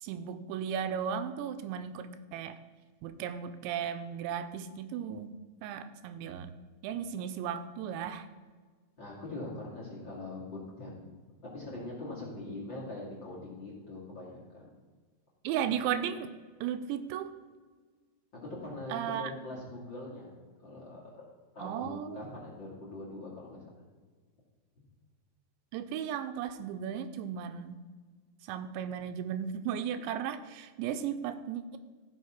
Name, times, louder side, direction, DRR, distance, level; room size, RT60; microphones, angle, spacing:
voice 1, 0.0-2.6 3.0-5.3 5.6-6.5 6.8-8.3 15.4-16.3 16.6-17.3 18.9-19.3 21.6-22.3 25.7-27.8 28.5-31.8, right 8 dB, 85° right, 10 dB, 2.8 m, -35 dB
voice 2, 9.0-11.1 11.5-14.7 18.6-20.3 20.6-21.2 21.5-23.6, left 2 dB, 30° left, -6 dB, 2.4 m, -42 dB
15.0 x 6.4 x 5.9 m, 1.5 s
omnidirectional pair, 5.3 m